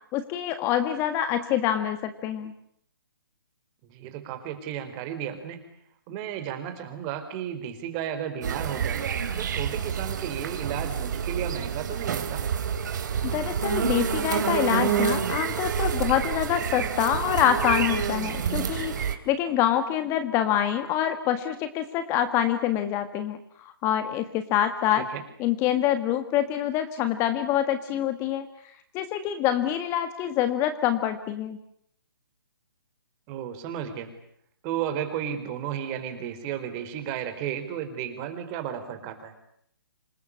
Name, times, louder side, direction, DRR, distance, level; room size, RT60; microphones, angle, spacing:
voice 1, 0.1-2.5 13.2-25.0 25.4-28.5 28.9-31.6, left 11 dB, 20° left, 9 dB, 1.6 m, -26 dB
voice 2, 3.8-5.7 6.1-9.0 9.4-12.4 25.0-25.2 33.3-34.1 34.6-39.3, right 9 dB, 25° right, 9 dB, 4.3 m, -33 dB
sound 1, 8.4-19.1, right 7 dB, 55° right, 3.3 m, -28 dB
27.0 x 20.5 x 9.9 m, 0.70 s
hypercardioid pair, 150°, 12 cm